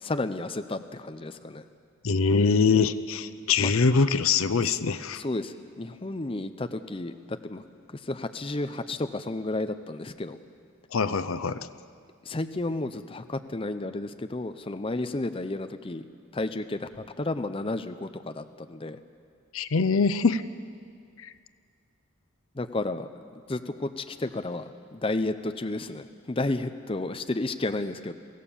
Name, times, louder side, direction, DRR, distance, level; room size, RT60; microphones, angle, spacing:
voice 1, 0.0-1.6 3.6-3.7 4.6-4.8 5.1-7.6 7.9-10.4 12.3-16.0 16.3-16.9 17.2-19.0 22.5-23.1 23.5-28.1, left 2 dB, 25° left, 9 dB, 0.6 m, -32 dB
voice 2, 2.0-5.2 10.9-11.6 19.5-20.4 21.2-21.3, left 5 dB, 80° left, 13 dB, 0.6 m, -23 dB
23.5 x 16.5 x 7.0 m, 2.2 s
head